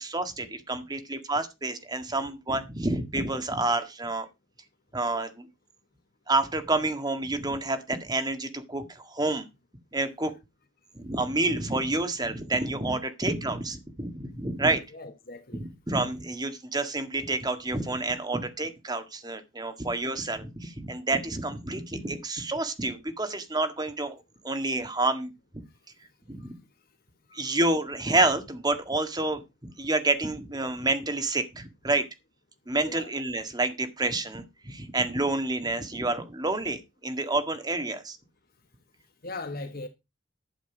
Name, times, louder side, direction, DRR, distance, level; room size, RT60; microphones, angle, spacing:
voice 1, 0.0-4.3 4.9-5.5 6.3-9.4 9.9-10.3 11.0-14.8 15.5-25.6 26.3-26.5 27.3-29.4 29.8-32.1 32.7-38.2, right 2 dB, 20° right, 1.8 m, -29 dB
voice 2, 14.9-15.7 26.4-26.5 27.3-27.6 32.8-33.1 39.2-39.9, left 3 dB, 50° left, 1.4 m, -39 dB
11.5 x 8.2 x 4.9 m
head